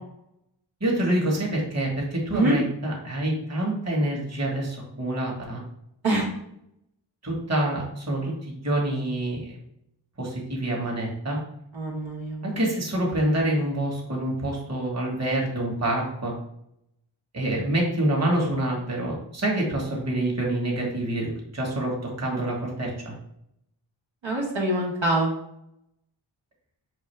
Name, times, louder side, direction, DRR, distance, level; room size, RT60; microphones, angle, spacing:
voice 1, 0.8-5.6 7.2-9.6 10.2-11.4 12.4-16.3 17.3-23.1, right 1 dB, 35° right, -2 dB, 1.2 m, -26 dB
voice 2, 11.7-12.6 24.2-25.3, right 1 dB, 75° right, -3 dB, 1.2 m, -25 dB
5.6 x 2.4 x 3.2 m, 0.78 s
wide cardioid pair, 65°, 47 cm